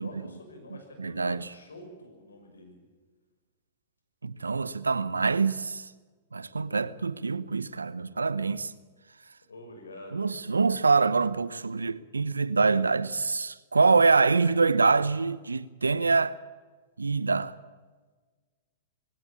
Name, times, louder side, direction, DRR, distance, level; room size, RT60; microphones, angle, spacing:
voice 1, 0.0-2.8 9.5-10.4, left 1 dB, 85° left, 6.4 m, -46 dB
voice 2, 1.0-1.5 4.2-5.9 6.3-8.7 10.1-16.4 17.0-17.5, right 4 dB, 90° right, 0.9 m, -25 dB
21.5 x 17.0 x 8.7 m
hypercardioid pair, 110°, 0 cm